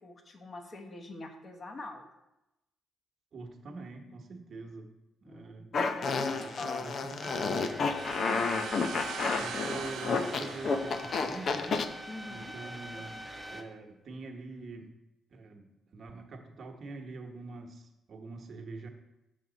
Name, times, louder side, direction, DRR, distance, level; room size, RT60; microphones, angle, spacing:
voice 1, 0.0-2.0 5.2-6.9 8.3-8.5 12.1-12.5, left 3 dB, 40° left, 4 dB, 1.1 m, -43 dB
voice 2, 3.3-4.9 5.2-5.7 6.3-7.8 8.2-9.0 9.4-11.9 12.3-13.1 13.5-14.9 15.3-18.9, right 3 dB, 50° right, 2 dB, 1.2 m, -45 dB
Fart, 5.7-11.9, left 4 dB, 55° left, 0.5 m, -31 dB
sound 1, 7.2-13.6, equal, 5° right, 0.9 m, -43 dB
sound 2, 7.9-11.7, right 8 dB, 75° right, 0.4 m, -42 dB
7.4 x 6.1 x 4.0 m, 0.92 s
cardioid pair, 90°, 0 cm